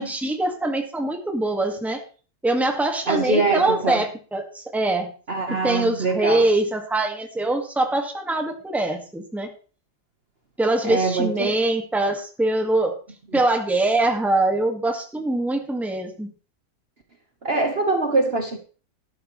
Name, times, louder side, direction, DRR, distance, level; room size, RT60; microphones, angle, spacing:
voice 1, 0.0-2.0 2.4-5.1 5.5-9.5 10.6-12.9 13.3-16.3, right 2 dB, ahead, 1.7 m, -23 dB
voice 2, 3.1-4.0 5.3-6.4 10.8-11.5 17.4-18.6, right 3 dB, 40° right, 1.4 m, -23 dB
12.5 x 12.0 x 3.2 m
omnidirectional pair, 1.8 m